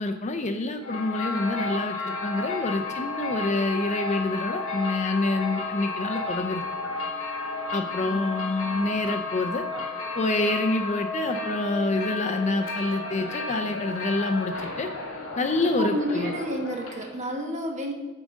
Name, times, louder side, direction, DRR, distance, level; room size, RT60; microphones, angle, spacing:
voice 1, 0.0-6.6 7.7-9.6 10.1-14.9 15.4-16.3, left 2 dB, 30° left, 6 dB, 0.5 m, -27 dB
Christmas Bells Athens, 0.8-17.2, left 3 dB, 70° left, 1.8 m, -32 dB
voice 2, 8.0-8.7 15.6-17.9, equal, 35° right, 2 dB, 1.0 m, -31 dB
8.9 x 3.7 x 6.2 m, 1.2 s
head